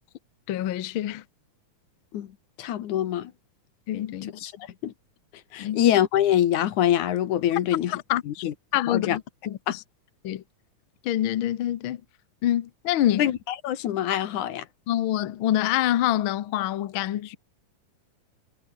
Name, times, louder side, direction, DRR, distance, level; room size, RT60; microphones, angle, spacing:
voice 1, 0.5-1.2 3.9-4.3 5.6-5.8 7.9-8.4 8.7-9.2 9.5-9.8 10.2-10.4 11.0-12.0 12.4-13.2 14.9-17.4, left 13 dB, 85° left, 1.1 m, -26 dB
voice 2, 2.6-3.3 4.3-4.5 4.8-4.9 5.5-8.5 8.9-9.2 9.7-9.8 13.2-14.7, left 11 dB, 70° left, 2.7 m, -24 dB
omnidirectional pair, 3.8 m